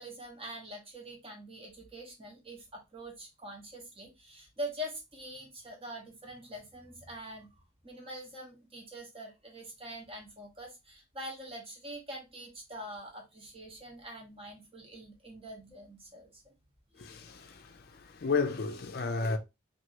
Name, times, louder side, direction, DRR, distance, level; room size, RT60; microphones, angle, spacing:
voice 1, 0.0-7.5 7.8-16.5 16.9-17.2, equal, 25° right, 0.9 m, -44 dB
voice 2, 17.0-19.4, left 4 dB, 50° left, 0.5 m, -33 dB
2.9 x 2.7 x 2.8 m
head